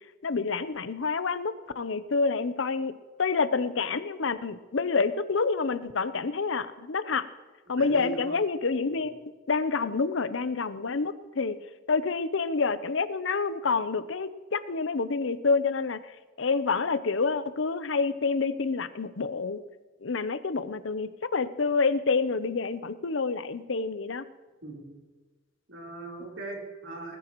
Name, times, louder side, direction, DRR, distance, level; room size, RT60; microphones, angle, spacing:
voice 1, 0.2-2.9 3.2-7.3 7.7-11.6 11.9-16.0 16.4-19.6 20.0-24.2, left 4 dB, 70° left, 13 dB, 0.7 m, -28 dB
voice 2, 7.8-8.4 8.8-9.2 24.6-25.0 25.7-27.2, right 3 dB, 70° right, -2 dB, 3.8 m, -39 dB
20.0 x 14.0 x 3.1 m, 1.3 s
head